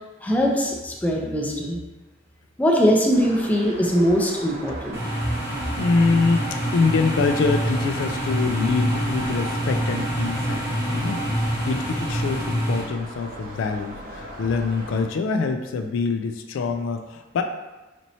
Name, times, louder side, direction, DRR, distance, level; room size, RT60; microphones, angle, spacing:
voice 1, 0.2-1.8 2.6-5.0, equal, 10° left, -2 dB, 0.5 m, -21 dB
sound 1, 3.1-15.1, right 1 dB, 50° right, 0.6 m, -38 dB
sound 2, 4.9-12.8, equal, 15° right, 1.0 m, -26 dB
voice 2, 5.8-17.4, left 4 dB, 80° left, 6 dB, 0.3 m, -25 dB
4.2 x 3.0 x 2.7 m, 1.1 s
head